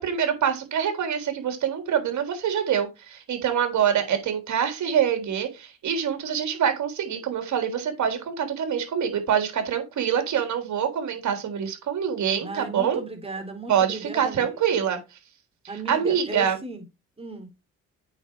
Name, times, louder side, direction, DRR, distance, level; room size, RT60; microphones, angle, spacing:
voice 1, 0.0-13.0 13.7-15.0 15.7-16.6, right 8 dB, 70° right, 3.6 m, -25 dB
voice 2, 12.4-14.5 14.7-14.8 15.7-16.8 17.2-17.5, right 3 dB, 20° right, 3.9 m, -35 dB
8.9 x 6.5 x 4.7 m
cardioid pair, 90°, 30 cm